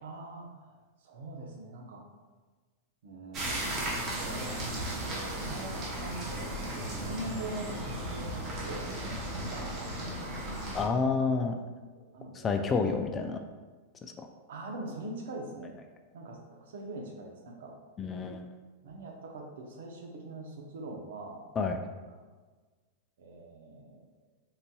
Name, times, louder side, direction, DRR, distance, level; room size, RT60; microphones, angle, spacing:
voice 1, 0.0-2.0 3.0-4.6 5.0-8.9 9.2-10.8 11.1-11.6 12.0-12.6 13.3-13.4 14.5-15.8 16.1-17.7 18.8-21.4 22.1-22.2 23.2-24.0, right 2 dB, 75° right, 1 dB, 0.7 m, -43 dB
sound 1, 3.3-10.9, right 1 dB, 40° right, 0.8 m, -36 dB
voice 2, 10.7-11.5 12.3-13.4 18.0-18.5 21.6-21.8, left 4 dB, 25° left, 5 dB, 0.3 m, -29 dB
3.9 x 2.7 x 2.3 m, 1.3 s
hypercardioid pair, 120°, 0 cm